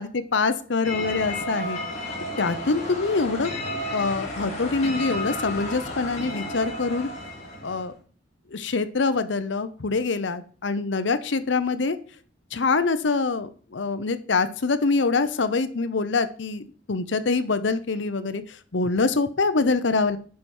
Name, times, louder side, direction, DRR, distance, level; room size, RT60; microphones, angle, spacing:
voice 1, 0.0-1.8 2.4-3.5 3.9-7.1 7.6-7.9 8.5-12.0 12.5-20.2, left 4 dB, 70° left, 12 dB, 0.7 m, -25 dB
sound 1, 0.8-7.9, left 1 dB, 35° left, 2.4 m, -32 dB
10.5 x 4.7 x 4.3 m, 0.43 s
head